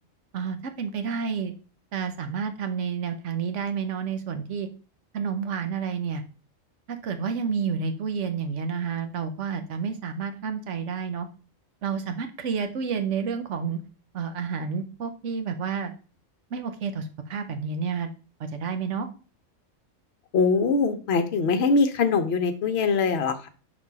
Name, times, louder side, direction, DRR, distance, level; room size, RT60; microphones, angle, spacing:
voice 1, 0.3-1.5 1.9-4.7 5.1-6.2 6.9-11.3 11.8-13.8 14.1-15.9 16.5-18.1 18.4-19.1, right 6 dB, 70° right, 8 dB, 1.1 m, -30 dB
voice 2, 20.3-23.5, left 4 dB, 60° left, 8 dB, 1.0 m, -22 dB
5.3 x 4.2 x 4.7 m, 0.36 s
omnidirectional pair, 1.3 m